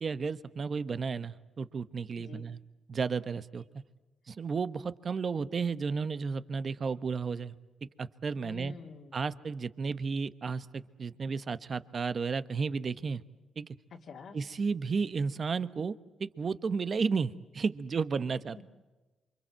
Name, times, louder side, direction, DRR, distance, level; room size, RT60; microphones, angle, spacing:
voice 1, 0.0-2.6 2.9-3.6 4.3-7.5 8.0-8.7 9.1-13.2 13.6-13.7 14.3-15.9 16.2-18.6, right 5 dB, 50° right, 13 dB, 1.2 m, -33 dB
voice 2, 2.2-2.5 8.4-9.2 13.9-14.4 18.6-18.7, left 5 dB, 70° left, -2 dB, 2.5 m, -47 dB
28.0 x 25.0 x 7.6 m, 1.1 s
cardioid pair, 70°, 0 cm